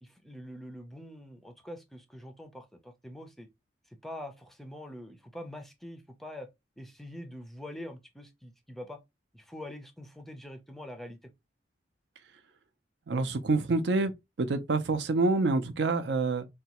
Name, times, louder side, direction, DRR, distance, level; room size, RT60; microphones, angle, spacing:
voice 1, 0.0-3.5 3.9-6.5 6.8-9.0 9.3-11.3, left 1 dB, ahead, 0.4 m, -44 dB
voice 2, 13.1-14.1 14.4-16.5, right 3 dB, 70° right, 0.5 m, -27 dB
4.0 x 2.2 x 2.8 m
head